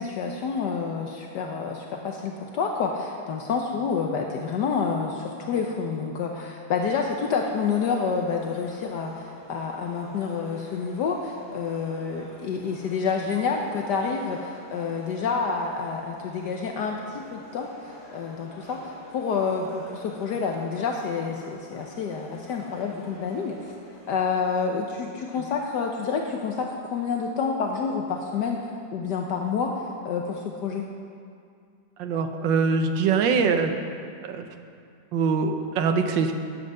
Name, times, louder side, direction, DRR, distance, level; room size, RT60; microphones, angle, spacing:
voice 1, 0.0-23.7 24.1-30.9, left 5 dB, 70° left, 2 dB, 1.3 m, -28 dB
sound 1, 6.7-24.6, left 1 dB, 25° right, 3.5 m, -48 dB
voice 2, 32.0-33.7 34.2-34.5 35.1-36.3, right 5 dB, 85° right, 6 dB, 1.5 m, -23 dB
10.5 x 7.7 x 7.5 m, 2.3 s
omnidirectional pair, 2.0 m